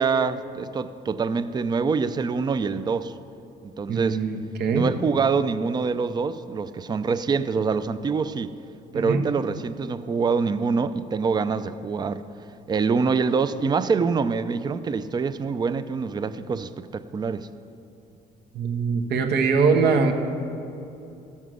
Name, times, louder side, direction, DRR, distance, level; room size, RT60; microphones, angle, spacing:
voice 1, 0.0-3.1 3.6-4.2 4.7-8.5 8.9-12.2 12.7-17.5, right 5 dB, 25° right, 0.4 m, -25 dB
voice 2, 3.9-4.9 8.9-9.2 18.5-20.1, right 5 dB, 70° right, 1.3 m, -22 dB
15.5 x 7.3 x 6.2 m
cardioid pair, 110°, 17 cm